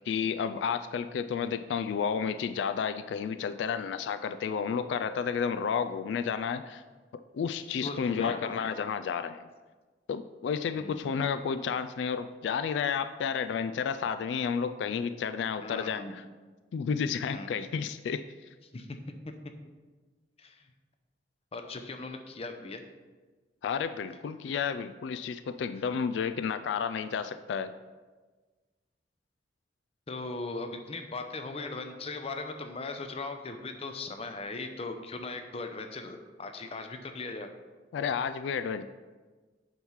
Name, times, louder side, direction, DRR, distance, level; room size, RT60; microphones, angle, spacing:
voice 1, 0.1-6.8 7.3-9.4 10.1-16.2 16.7-18.3 23.6-27.7 37.9-38.8, left 6 dB, 85° left, 11 dB, 0.3 m, -31 dB
voice 2, 7.8-8.5 10.8-11.1 15.6-16.1 17.2-17.6 18.7-19.4 20.4-20.7 21.5-22.8 30.1-37.5, left 3 dB, 35° left, 6 dB, 0.6 m, -39 dB
9.0 x 3.1 x 5.6 m, 1.3 s
head